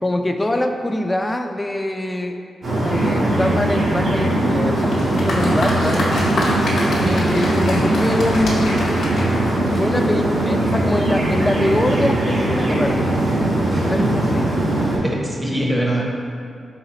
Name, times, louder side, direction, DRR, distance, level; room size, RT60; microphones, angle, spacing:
voice 1, 0.0-2.4 2.8-6.1 6.5-6.7 7.0-8.8 9.7-13.2 13.8-14.4, left 1 dB, 20° left, 5 dB, 0.3 m, -23 dB
sound 1, 2.6-15.0, right 1 dB, 65° right, 1.1 m, -20 dB
Applause, 4.7-10.2, left 1 dB, 85° left, 0.7 m, -27 dB
voice 2, 14.0-14.4 14.9-16.0, right 1 dB, 15° right, -1 dB, 0.8 m, -23 dB
4.0 x 3.9 x 2.9 m, 2.4 s
cardioid pair, 60°, 0 cm